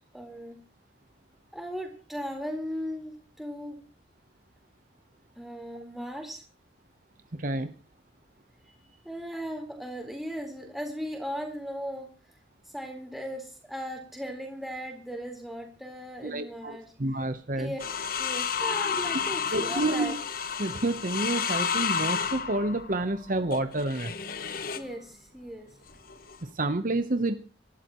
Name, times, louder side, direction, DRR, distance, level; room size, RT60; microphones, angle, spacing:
voice 1, 0.1-0.6 1.5-3.8 5.3-6.4 9.0-12.1 12.6-16.9 17.5-17.8 18.1-20.1 24.6-25.8, equal, ahead, 2 dB, 4.2 m, -37 dB
voice 2, 16.2-17.7 19.5-20.1 20.6-24.1 26.6-27.4, right 2 dB, 45° right, 8 dB, 1.0 m, -29 dB
sound 1, 17.8-24.9 25.9-26.5, left 6 dB, 50° left, 1.1 m, -31 dB
26.0 x 12.5 x 3.1 m, 0.36 s
head